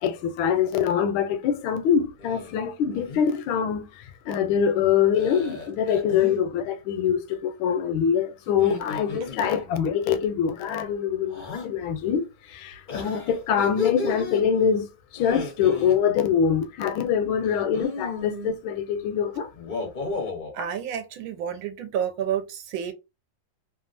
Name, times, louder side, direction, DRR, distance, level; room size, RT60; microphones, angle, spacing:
voice 1, 0.0-14.9 15.1-19.5, left 7 dB, 80° left, 1.4 m, -24 dB
sound 1, 2.2-2.5 2.9-3.4 5.1-6.4 8.5-9.8 11.3-11.7 12.9-14.4 15.1-16.0 17.4-18.5 19.5-20.5, left 4 dB, 50° left, 0.5 m, -33 dB
voice 2, 20.5-22.9, right 9 dB, 80° right, 1.5 m, -30 dB
3.4 x 2.4 x 2.5 m
omnidirectional pair, 2.2 m